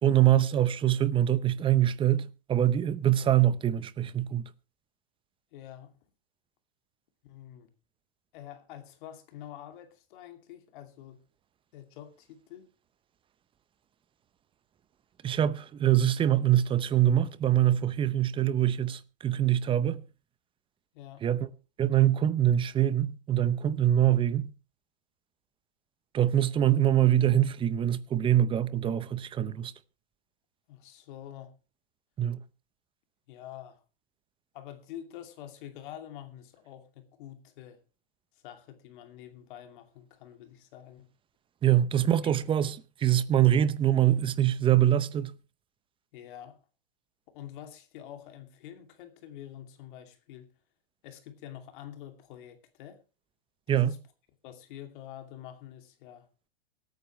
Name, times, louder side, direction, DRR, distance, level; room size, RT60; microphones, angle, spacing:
voice 1, 0.0-4.5 15.2-20.0 21.2-21.5 21.8-24.5 26.1-29.7 32.2-32.4 41.6-45.3 53.7-53.9, right 11 dB, 15° right, 0.7 m, -24 dB
voice 2, 5.5-5.9 7.2-7.7 8.3-11.2 11.7-12.7 20.9-21.2 30.7-31.5 33.3-33.8 34.5-37.8 38.4-41.1 42.2-42.3 46.1-46.6 47.3-50.5 51.0-53.0 53.7-54.0 54.4-56.3, left 11 dB, 55° left, 2.6 m, -46 dB
24.5 x 9.2 x 3.2 m
hypercardioid pair, 125°, 31 cm